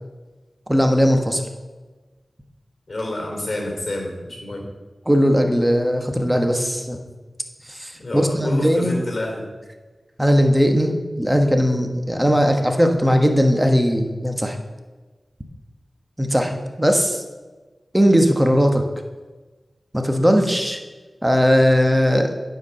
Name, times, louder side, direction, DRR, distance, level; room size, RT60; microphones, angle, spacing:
voice 1, 0.7-1.4 5.0-7.0 7.7-8.9 10.2-14.6 16.2-17.2 17.9-18.8 19.9-20.8 21.2-22.3, equal, 15° right, 4 dB, 1.3 m, -18 dB
voice 2, 2.9-4.7 8.0-9.5, left 1 dB, 45° left, 1 dB, 3.3 m, -28 dB
9.4 x 4.8 x 6.8 m, 1.3 s
cardioid pair, 45°, 0 cm